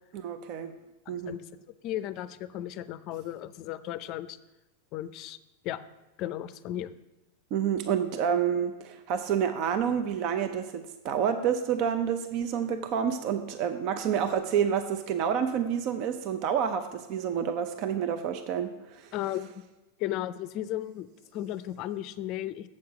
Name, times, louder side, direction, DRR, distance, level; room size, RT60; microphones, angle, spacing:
voice 1, 0.2-0.7 1.1-1.4 7.5-19.1, right 8 dB, 50° right, 8 dB, 0.5 m, -29 dB
voice 2, 1.1-1.4 1.8-4.4 4.9-5.4 5.6-5.8 6.2-6.9 19.1-19.6 20.0-22.7, left 13 dB, 45° left, 14 dB, 0.5 m, -35 dB
7.8 x 7.4 x 4.8 m, 1.0 s
supercardioid pair, 130°, 0 cm